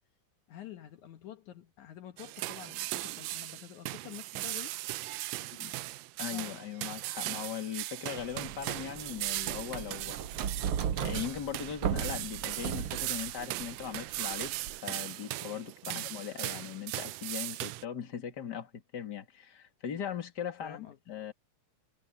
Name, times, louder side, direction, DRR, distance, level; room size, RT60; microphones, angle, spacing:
voice 1, 0.5-4.8 5.4-5.8 6.3-6.6 15.8-16.1 20.6-21.0, left 11 dB, 70° left, 2.6 m, -48 dB
sound 1, 2.2-17.8, right 18 dB, 90° right, 1.5 m, -38 dB
voice 2, 6.2-10.2 11.0-21.3, left 9 dB, 35° left, 2.7 m, -39 dB
sound 2, 8.2-14.8, right 9 dB, 65° right, 1.4 m, -37 dB
omnidirectional pair, 3.6 m